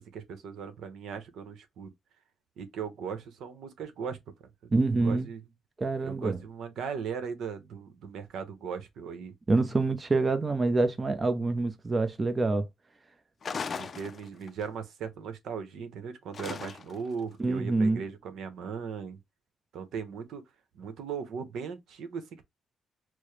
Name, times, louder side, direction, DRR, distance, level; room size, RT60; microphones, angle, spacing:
voice 1, 0.0-1.9 2.6-4.5 5.0-5.4 6.0-9.3 13.8-19.2 19.7-20.4 20.7-22.4, right 6 dB, 75° right, 0.8 m, -38 dB
voice 2, 4.7-5.3 5.8-6.4 9.5-12.7 17.4-18.0, right 3 dB, 25° right, 0.6 m, -26 dB
sound 1, 13.4-14.6 16.3-17.1, left 5 dB, 45° left, 0.4 m, -37 dB
4.6 x 2.1 x 3.2 m
cardioid pair, 90°, 0 cm